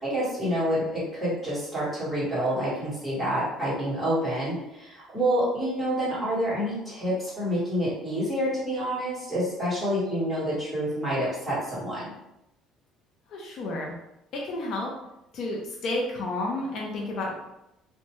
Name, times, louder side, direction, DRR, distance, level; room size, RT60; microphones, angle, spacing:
voice 1, 0.0-12.1, equal, ahead, -10 dB, 1.4 m, -28 dB
voice 2, 13.3-13.9 14.4-14.9 15.3-17.3, left 2 dB, 55° left, -2 dB, 0.5 m, -31 dB
2.6 x 2.1 x 3.0 m, 0.88 s
cardioid pair, 145°, 0 cm